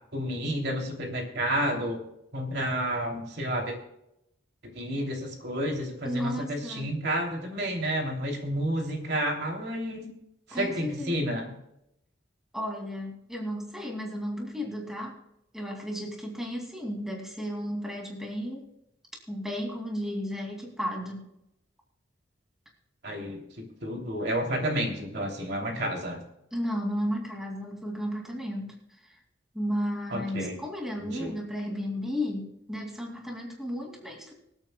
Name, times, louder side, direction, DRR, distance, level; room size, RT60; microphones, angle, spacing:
voice 1, 0.1-2.0 2.3-3.8 4.8-10.1 10.5-11.5 23.0-23.4 23.8-26.2 30.1-30.5 31.0-31.3, equal, 60° right, 1 dB, 3.0 m, -30 dB
voice 2, 6.0-6.9 10.5-11.3 12.5-15.2 15.5-18.6 19.3-21.3 26.5-29.2 29.5-34.3, equal, ahead, -1 dB, 2.5 m, -34 dB
25.0 x 8.9 x 2.3 m, 0.81 s
head